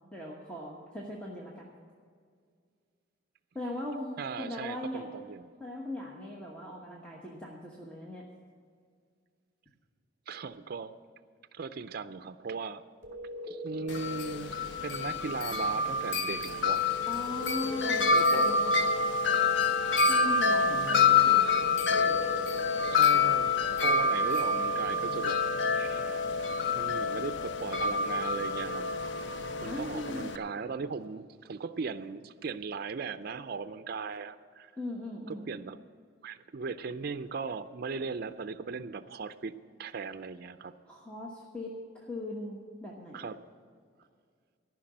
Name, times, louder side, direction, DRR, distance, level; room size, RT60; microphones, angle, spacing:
voice 1, 0.0-1.7 3.5-5.0 5.6-8.2 17.1-18.7 20.1-22.3 29.6-30.4 34.8-35.5 40.9-43.3, left 1 dB, 5° left, -3 dB, 1.1 m, -39 dB
voice 2, 4.2-5.5 10.3-10.9 11.5-12.8 13.4-14.6 14.8-17.2 18.1-18.6 20.7-21.4 22.9-25.4 25.7-26.2 26.7-28.9 29.6-34.7 35.3-35.8 36.2-40.7 43.1-43.4, right 4 dB, 55° right, 11 dB, 0.4 m, -38 dB
sound 1, 13.0-14.4 17.3-18.7 21.5-22.9, left 1 dB, 15° right, 2.6 m, -40 dB
Wind chime, 13.9-30.4, left 4 dB, 70° left, 0.7 m, -27 dB
14.0 x 6.0 x 8.7 m, 2.1 s
head